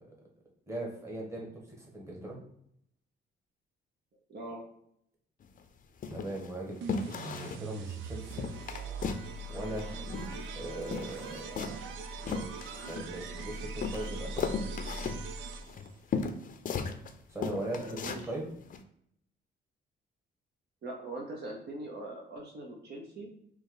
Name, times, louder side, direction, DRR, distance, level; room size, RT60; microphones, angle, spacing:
voice 1, 0.7-1.5 1.8-2.4 6.1-8.5 9.5-10.0 10.6-11.4 12.2-12.5 12.9-14.4 17.3-18.0 18.3-18.5, right 1 dB, 15° right, -2 dB, 1.5 m, -39 dB
voice 2, 4.3-4.7 17.6-18.3 20.8-23.3, right 2 dB, 55° right, -1 dB, 0.9 m, -42 dB
sound 1, 5.4-5.6 6.0-6.5 6.9-7.7 7.9-8.0 8.3-9.3 9.6-10.6 10.8-13.4 13.8-17.1 17.4-18.3 18.7-18.8, left 5 dB, 45° left, 0.5 m, -36 dB
sound 2, 6.8-16.0, right 3 dB, 80° right, 0.5 m, -41 dB
4.3 x 2.9 x 3.8 m, 0.70 s
cardioid pair, 90°, 20 cm